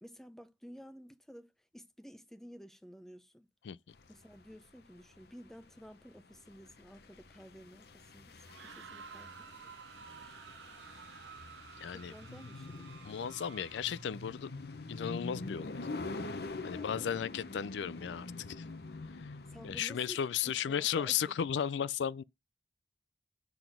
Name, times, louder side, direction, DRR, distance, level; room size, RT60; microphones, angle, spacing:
voice 1, 0.0-3.5 4.1-9.7 11.8-12.9 16.7-17.1 19.5-21.4, equal, ahead, 0.6 m, -53 dB
voice 2, 3.6-4.0 11.8-12.1 13.0-14.5 14.9-15.9 16.6-18.7 19.1-19.3 19.6-22.2, left 8 dB, 80° left, 0.4 m, -35 dB
sound 1, 4.0-19.8, left 3 dB, 60° left, 0.8 m, -45 dB
sound 2, 8.4-14.1, right 7 dB, 85° right, 0.5 m, -52 dB
7.0 x 3.9 x 5.9 m
head